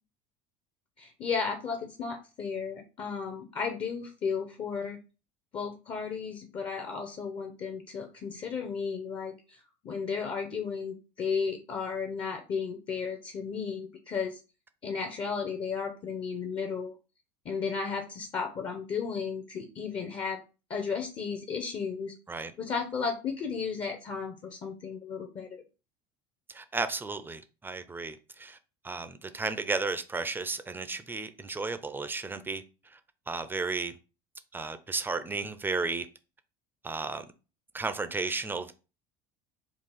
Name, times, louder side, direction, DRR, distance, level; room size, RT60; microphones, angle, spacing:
voice 1, 1.0-5.0 5.5-14.4 14.8-16.9 17.4-20.4 20.7-22.1 22.6-25.6, left 5 dB, 35° left, 0.6 m, -34 dB
voice 2, 26.5-28.6 28.8-32.6 32.9-33.0 33.3-33.9 34.5-36.1 36.8-37.2 37.7-38.7, right 3 dB, 15° right, 0.5 m, -33 dB
3.8 x 2.4 x 4.0 m
supercardioid pair, 100°, 15 cm